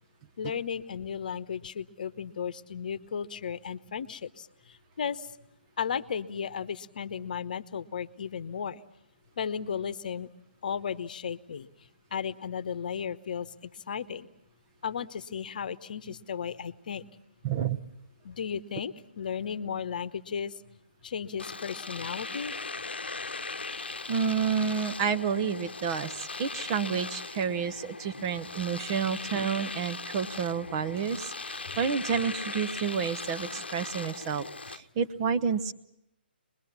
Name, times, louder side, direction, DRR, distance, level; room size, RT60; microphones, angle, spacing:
voice 1, 0.4-5.3 5.8-8.8 9.4-10.3 10.6-11.7 12.1-14.3 14.8-17.1 18.2-20.5 21.0-22.5, left 7 dB, 50° left, 14 dB, 1.0 m, -35 dB
voice 2, 17.4-17.8 24.1-26.1 26.4-35.7, right 6 dB, 30° right, 9 dB, 1.0 m, -30 dB
Domestic sounds home sounds, 21.4-34.8, left 3 dB, 75° left, 0.9 m, -39 dB
25.5 x 21.5 x 7.2 m, 0.80 s
figure-of-eight pair, 135°, 6 cm